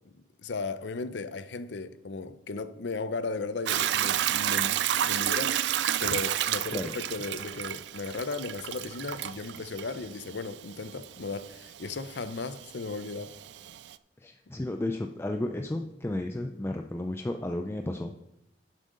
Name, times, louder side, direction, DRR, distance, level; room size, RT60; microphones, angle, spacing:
voice 1, 0.0-5.7 6.0-13.4, left 3 dB, 75° left, 0.6 m, -36 dB
Hiss / Toilet flush / Trickle dribble, 3.7-13.9, right 11 dB, 70° right, 0.4 m, -31 dB
voice 2, 14.2-18.1, left 1 dB, 15° left, 0.4 m, -33 dB
11.5 x 7.5 x 3.8 m
head